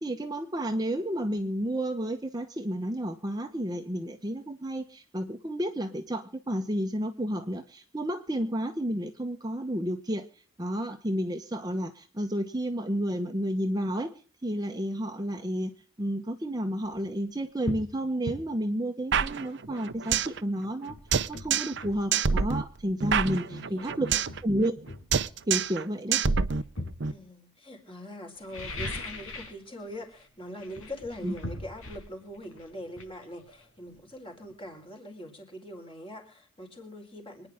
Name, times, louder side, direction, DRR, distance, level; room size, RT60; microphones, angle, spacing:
voice 1, 0.0-10.2 10.6-14.1 14.4-15.7 16.0-21.0 21.3-24.1 24.4-24.8 25.5-26.2 31.2-31.3, right 1 dB, 20° right, 5 dB, 1.0 m, -31 dB
sound 1, 16.8-17.0 17.6-17.9 18.3-18.4 20.3-20.4 20.9-22.5 23.6-23.7 24.3-25.7 26.3-27.1 28.4-29.6 29.9-30.3 30.6-34.1 34.4-34.5, left 1 dB, 90° left, 4.9 m, -39 dB
sound 2, 19.1-20.4 20.7-20.8 21.1-21.8 22.1-24.4 24.6-24.9 25.1-25.8 26.1-27.1, right 6 dB, 55° right, 0.7 m, -27 dB
voice 2, 23.0-24.2 27.1-37.5, equal, 25° left, 3 dB, 4.2 m, -43 dB
25.5 x 9.9 x 3.6 m, 0.40 s
head